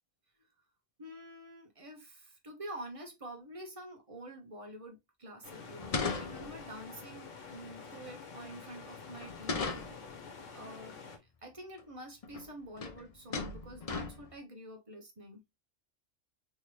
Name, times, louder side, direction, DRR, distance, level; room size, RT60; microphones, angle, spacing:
voice 1, 1.0-9.8 10.5-15.4, right 1 dB, 30° right, 1.0 m, -48 dB
sound 1, 5.4-11.2, left 5 dB, 75° left, 1.3 m, -48 dB
sound 2, 5.8-6.8 9.2-10.1 11.8-11.9 12.2-12.5 12.8-13.0 13.3-14.3, left 4 dB, 45° left, 0.5 m, -37 dB
3.4 x 3.1 x 3.0 m
omnidirectional pair, 1.3 m